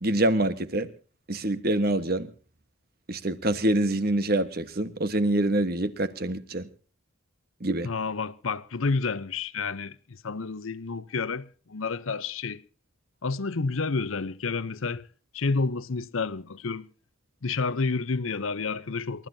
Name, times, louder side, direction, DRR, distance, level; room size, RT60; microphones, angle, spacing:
voice 1, 0.0-0.9 1.3-2.3 3.1-6.7 7.6-7.9, right 1 dB, 45° right, 1.3 m, -25 dB
voice 2, 7.8-12.6 13.2-15.0 15.3-16.9 17.4-19.3, left 4 dB, 75° left, 0.8 m, -30 dB
28.5 x 13.5 x 2.8 m
head